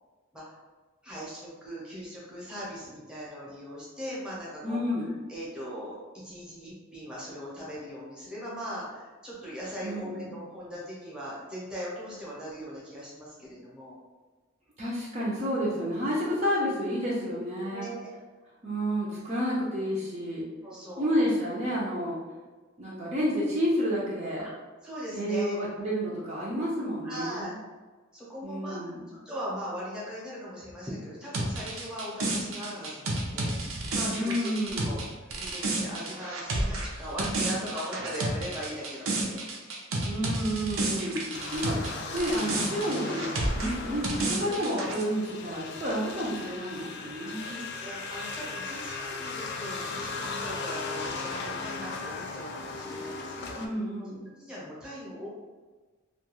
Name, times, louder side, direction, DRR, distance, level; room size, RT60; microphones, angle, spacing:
voice 1, 1.0-4.8 5.3-6.0 6.2-14.0 17.7-18.1 20.6-21.1 24.8-25.5 27.0-27.5 28.1-28.8 29.2-34.5 34.8-39.5 46.8-46.9 47.3-53.7 54.4-55.3, equal, 5° right, -7 dB, 0.8 m, -39 dB
voice 2, 4.6-5.1 9.8-10.3 14.8-17.9 18.6-20.5 21.0-22.2 22.8-24.5 25.1-27.5 28.4-29.1 34.1-34.9 40.0-41.2 41.5-41.8 42.1-43.3 43.5-47.7 53.6-54.3, equal, 30° right, -7 dB, 0.5 m, -30 dB
sound 1, 31.3-41.9 42.2-45.0, right 2 dB, 80° right, 0.5 m, -31 dB
sound 2, 41.3-53.7, left 4 dB, 55° left, 0.3 m, -37 dB
2.4 x 2.3 x 2.9 m, 1.3 s
head